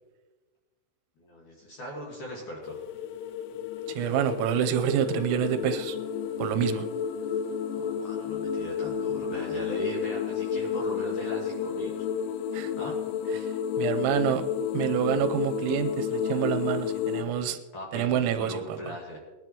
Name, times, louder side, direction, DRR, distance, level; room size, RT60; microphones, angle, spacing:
voice 1, 1.2-2.8 7.7-12.1 12.7-13.0 17.7-18.1 18.4-19.2, equal, 55° left, -3 dB, 2.4 m, -39 dB
sound 1, 2.6-17.2, left 7 dB, 90° left, 3.5 m, -31 dB
voice 2, 3.9-6.0 6.4-6.9 12.5-12.7 13.3-14.4 14.7-17.6 17.9-18.8, right 10 dB, 85° right, 8 dB, 3.4 m, -27 dB
20.5 x 11.0 x 3.0 m, 1.3 s
omnidirectional pair, 5.9 m